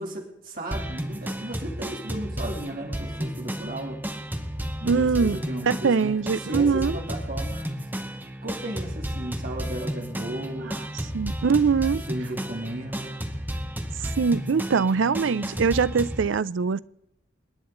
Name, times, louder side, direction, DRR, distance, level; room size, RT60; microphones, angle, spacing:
voice 1, 0.0-4.0 4.8-7.7 8.4-11.0 11.9-13.3, right 1 dB, 50° right, 3.1 m, -35 dB
sound 1, 0.7-16.3, equal, 10° right, 1.0 m, -33 dB
voice 2, 4.8-7.0 11.1-12.0 14.0-16.8, right 5 dB, 80° right, 0.5 m, -23 dB
28.5 x 9.7 x 3.9 m
head